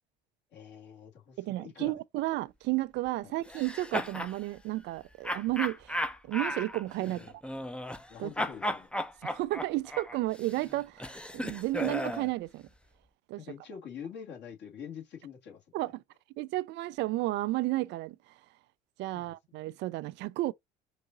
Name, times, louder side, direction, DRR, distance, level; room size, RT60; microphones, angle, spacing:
voice 1, 0.5-2.0 3.2-3.3 7.0-7.4 8.1-8.9 13.4-15.6 19.1-19.6, left 7 dB, 55° left, 2.3 m, -45 dB
voice 2, 1.4-7.2 8.2-8.3 9.2-12.6 13.3-13.4 15.7-16.0 16.4-18.2 19.0-20.5, right 18 dB, 55° right, 0.4 m, -32 dB
sound 1, 3.5-4.4 5.2-8.1 8.4-12.3, left 1 dB, 5° left, 0.6 m, -35 dB
4.8 x 2.7 x 3.9 m
hypercardioid pair, 65°, 21 cm